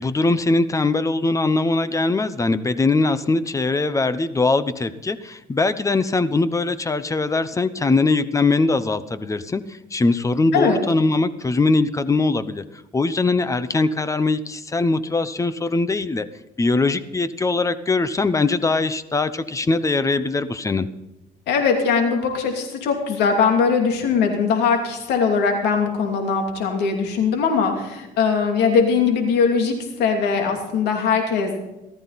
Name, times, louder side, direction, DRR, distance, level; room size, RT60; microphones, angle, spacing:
voice 1, 0.0-9.6 9.9-12.6 12.9-16.3 16.6-20.9, left 3 dB, 20° left, 13 dB, 0.9 m, -21 dB
voice 2, 21.5-31.6, left 5 dB, 85° left, 3 dB, 2.8 m, -20 dB
19.0 x 13.5 x 4.2 m, 0.99 s
cardioid pair, 110°, 17 cm